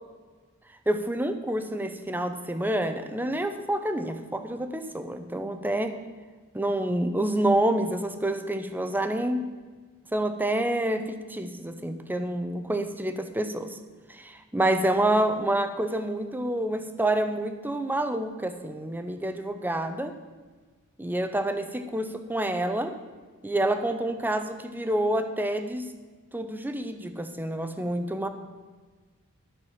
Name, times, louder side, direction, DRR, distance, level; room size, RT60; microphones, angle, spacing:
voice 1, 0.9-5.9 6.5-9.4 10.1-13.7 14.1-20.1 21.0-22.9 23.4-25.9 26.3-28.3, right 1 dB, 10° right, 8 dB, 0.7 m, -28 dB
12.0 x 6.1 x 7.3 m, 1.4 s
head